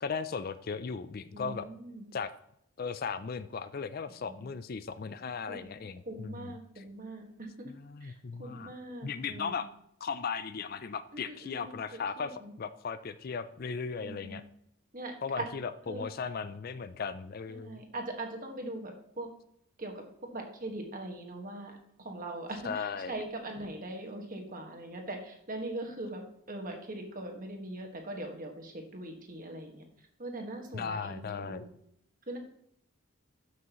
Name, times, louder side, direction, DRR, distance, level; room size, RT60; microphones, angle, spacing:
voice 1, 0.0-1.7 2.1-2.3 2.8-6.8 7.7-8.7 9.0-9.7 10.0-14.4 15.2-17.8 22.6-23.1 30.7-31.6, left 5 dB, 45° left, 13 dB, 0.4 m, -37 dB
voice 2, 1.3-2.1 4.1-4.5 5.5-7.7 8.0-8.1 8.4-9.6 11.1-12.5 13.9-14.4 14.9-15.5 15.9-16.1 17.5-19.3 19.8-20.0 20.3-26.2 26.5-29.8 30.2-31.7 32.3-32.4, right 1 dB, 40° right, 3 dB, 1.6 m, -41 dB
12.5 x 6.2 x 3.0 m, 0.73 s
head